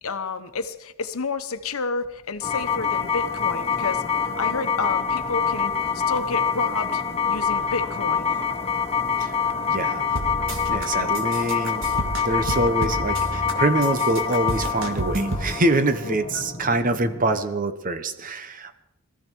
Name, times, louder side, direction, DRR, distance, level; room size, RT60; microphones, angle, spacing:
voice 1, 0.0-8.4 16.0-16.5, left 4 dB, 75° left, 10 dB, 1.1 m, -31 dB
sound 1, 2.4-17.4, left 6 dB, 30° left, 1.2 m, -26 dB
voice 2, 9.7-10.1 10.7-11.8 12.2-18.8, right 2 dB, 40° right, 10 dB, 1.0 m, -25 dB
sound 2, 10.2-10.9 11.1-13.5 13.8-15.5, right 2 dB, 60° right, 1.9 m, -30 dB
22.0 x 14.0 x 4.6 m, 0.93 s
head